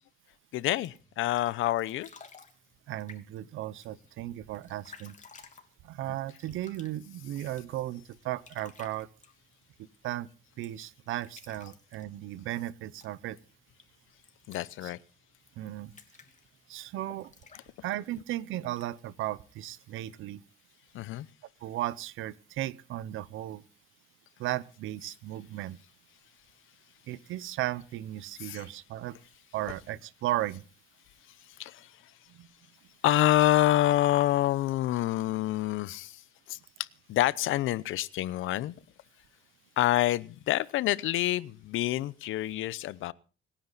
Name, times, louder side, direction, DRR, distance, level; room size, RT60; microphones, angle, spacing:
voice 1, 0.5-2.1 14.5-15.0 20.9-21.3 28.4-28.7 31.6-32.0 33.0-36.2 36.5-38.7 39.8-43.1, left 14 dB, 85° left, 0.8 m, -27 dB
sound 1, 0.8-20.3, left 5 dB, 40° left, 3.0 m, -57 dB
voice 2, 2.9-5.1 5.8-9.1 10.0-10.3 10.6-13.4 14.8-14.9 15.6-15.9 16.7-17.3 17.8-20.4 21.6-23.6 24.4-25.8 27.1-29.2 29.5-30.6 32.3-32.5, right 14 dB, 90° right, 0.9 m, -35 dB
26.0 x 10.5 x 4.1 m
cardioid pair, 90°, 20 cm